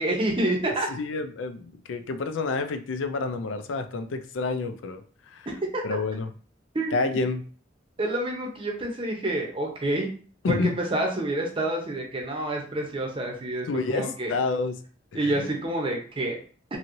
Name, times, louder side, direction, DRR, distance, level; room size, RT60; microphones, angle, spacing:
voice 1, 0.0-0.9 5.7-5.8 6.7-7.2 8.0-10.1 10.5-14.4 15.1-16.4, right 1 dB, 30° right, 1 dB, 0.7 m, -28 dB
voice 2, 0.9-5.5 5.8-6.3 6.9-7.5 10.4-10.8 13.7-14.8 15.2-15.5, left 3 dB, 90° left, 9 dB, 0.4 m, -29 dB
2.9 x 2.7 x 2.6 m, 0.42 s
head